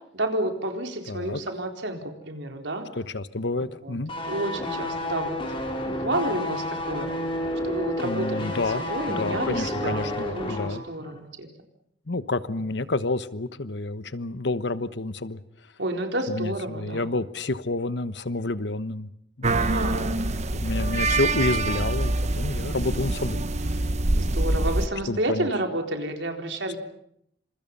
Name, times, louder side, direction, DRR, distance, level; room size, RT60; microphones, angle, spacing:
voice 1, 0.1-2.9 3.6-4.0 4.2-5.4 5.8-7.1 7.6-11.5 15.8-17.2 19.4-20.1 22.6-22.8 24.2-26.8, right 1 dB, 85° right, 4 dB, 4.2 m, -30 dB
voice 2, 1.1-1.4 3.0-4.1 8.0-8.8 9.2-10.8 12.1-15.4 16.3-19.1 19.4-23.5 25.1-25.5, left 2 dB, 75° left, 13 dB, 1.2 m, -29 dB
sound 1, 4.1-10.8 11.0-11.2, left 1 dB, 30° left, 4.6 m, -30 dB
sound 2, 19.4-24.9, right 2 dB, 40° right, 1.0 m, -25 dB
28.5 x 27.0 x 5.5 m, 0.71 s
head